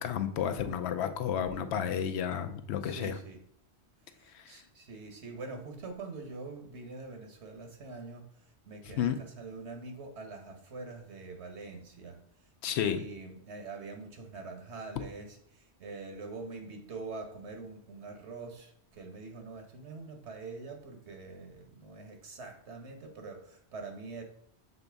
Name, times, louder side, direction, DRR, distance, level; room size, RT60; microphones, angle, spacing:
voice 1, 0.0-3.2 4.3-4.6 9.0-9.2 12.6-13.0, left 8 dB, 75° left, 8 dB, 0.8 m, -32 dB
voice 2, 2.8-3.4 4.1-12.5 12.8-24.2, right 3 dB, 80° right, 4 dB, 1.3 m, -44 dB
6.9 x 3.9 x 3.4 m, 0.67 s
omnidirectional pair, 1.1 m